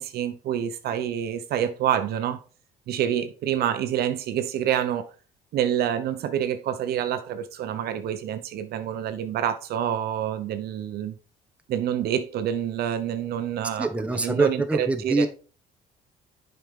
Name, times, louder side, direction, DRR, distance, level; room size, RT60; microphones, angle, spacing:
voice 1, 0.0-2.4 2.9-5.1 5.5-11.1 11.7-13.9 14.1-15.3, right 10 dB, 70° right, 0.8 m, -27 dB
voice 2, 13.8-15.3, right 3 dB, 5° right, 1.1 m, -24 dB
7.5 x 5.3 x 3.7 m
cardioid pair, 110°, 17 cm